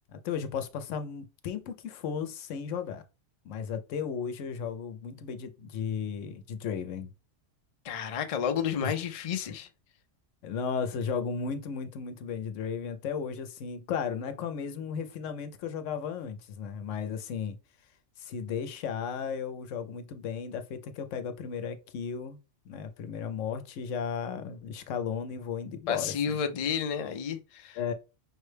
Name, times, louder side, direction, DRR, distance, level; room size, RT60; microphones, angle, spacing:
voice 1, 0.1-3.0 3.4-7.1 8.8-8.9 10.4-17.6 18.2-22.4 22.7-26.1 27.8-27.9, left 6 dB, 85° left, 1.0 m, -35 dB
voice 2, 7.8-9.7 25.9-27.8, left 7 dB, 55° left, 0.4 m, -31 dB
5.3 x 2.1 x 3.2 m
omnidirectional pair, 1.3 m